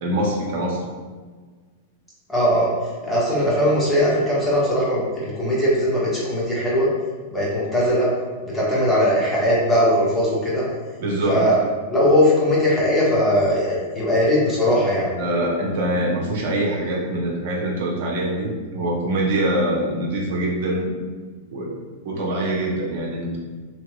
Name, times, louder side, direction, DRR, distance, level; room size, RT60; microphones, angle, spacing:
voice 1, 0.0-0.9 11.0-11.5 15.2-21.0 21.5-21.8 22.0-23.4, right 1 dB, 55° right, -2 dB, 0.7 m, -24 dB
voice 2, 2.3-2.7 3.0-6.9 7.3-8.1 8.4-10.6 11.3-11.5 11.9-15.1, equal, 5° left, -8 dB, 1.1 m, -19 dB
2.9 x 2.8 x 2.3 m, 1.5 s
figure-of-eight pair, 95°, 0 cm